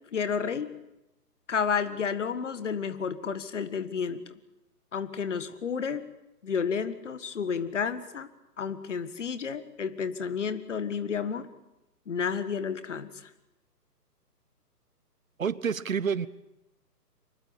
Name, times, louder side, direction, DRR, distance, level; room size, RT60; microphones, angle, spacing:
voice 1, 0.1-0.7 1.5-4.4 4.9-6.0 6.4-8.3 8.6-11.5 12.1-13.1, left 6 dB, 45° left, 1.7 m, -31 dB
voice 2, 15.4-16.3, right 6 dB, 55° right, 1.0 m, -28 dB
24.0 x 21.0 x 8.8 m
figure-of-eight pair, 135°, 48 cm